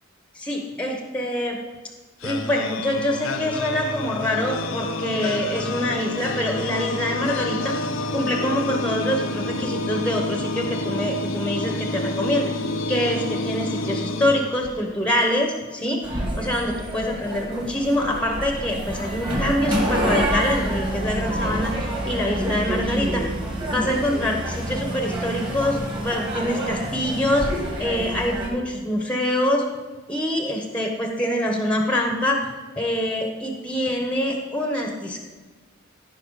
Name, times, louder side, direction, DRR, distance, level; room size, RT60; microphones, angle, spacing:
voice 1, 0.3-1.6 2.2-7.7 8.1-12.5 12.9-23.2 23.7-27.5 27.8-29.6 30.1-32.5 32.8-35.3, left 1 dB, 5° left, 2 dB, 1.0 m, -25 dB
sound 1, 2.2-15.1, left 2 dB, 65° left, 0.7 m, -29 dB
sound 2, 16.0-28.5, right 1 dB, 20° right, 2.0 m, -27 dB
15.0 x 5.6 x 4.1 m, 1.3 s
head